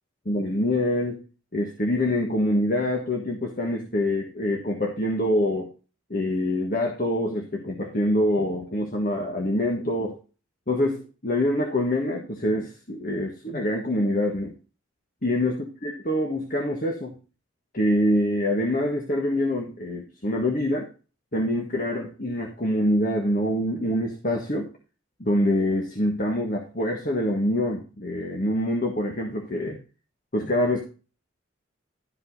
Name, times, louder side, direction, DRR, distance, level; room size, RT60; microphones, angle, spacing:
voice 1, 0.2-1.2 1.5-5.7 6.1-10.2 10.7-14.5 15.2-17.1 17.7-20.9 21.3-24.7 25.2-29.8 30.3-30.8, left 1 dB, 40° left, 1 dB, 1.5 m, -25 dB
12.5 x 5.4 x 4.0 m, 0.35 s
head